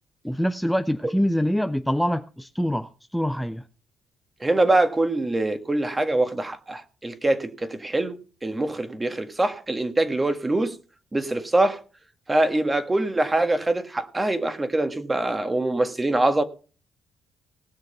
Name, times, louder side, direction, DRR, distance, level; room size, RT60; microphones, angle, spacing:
voice 1, 0.2-3.7, equal, ahead, 0.6 m, -25 dB
voice 2, 4.4-10.8 11.1-11.8 12.3-16.4, right 2 dB, 20° right, 1.7 m, -24 dB
18.5 x 6.5 x 5.5 m
cardioid pair, 90°, 0 cm